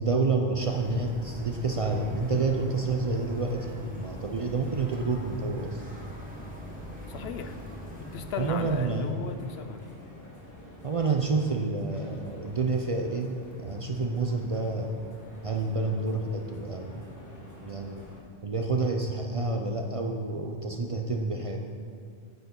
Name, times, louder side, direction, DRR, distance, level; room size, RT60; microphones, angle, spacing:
voice 1, 0.0-5.8 8.4-9.2 10.8-15.0 15.4-17.1 17.6-18.0 18.4-21.6, right 3 dB, 45° right, 2 dB, 0.5 m, -29 dB
sound 1, 0.6-8.9, equal, 10° right, 1.2 m, -42 dB
sound 2, 1.2-18.2, left 1 dB, 20° left, 1.3 m, -48 dB
voice 2, 7.1-7.6 8.1-9.8, left 7 dB, 75° left, 8 dB, 0.8 m, -36 dB
9.0 x 8.3 x 3.7 m, 2.2 s
omnidirectional pair, 1.0 m